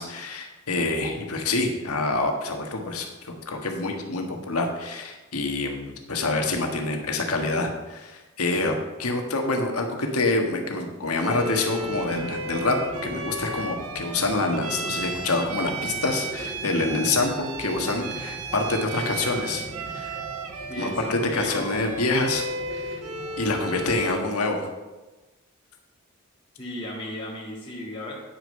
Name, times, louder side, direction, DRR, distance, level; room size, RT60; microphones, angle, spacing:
voice 1, 0.0-8.7 9.0-12.8 13.0-19.6 19.9-20.2 20.8-23.0 23.4-24.7, left 2 dB, 90° left, 3 dB, 1.6 m, -26 dB
Bowed string instrument, 11.2-24.3, right 2 dB, 80° right, 0.9 m, -34 dB
sound 1, 11.8-24.0, equal, 5° left, 2.7 m, -40 dB
voice 2, 19.2-19.7 20.7-21.8 26.6-28.2, left 1 dB, 25° left, -6 dB, 2.0 m, -35 dB
9.9 x 6.5 x 5.5 m, 1.1 s
head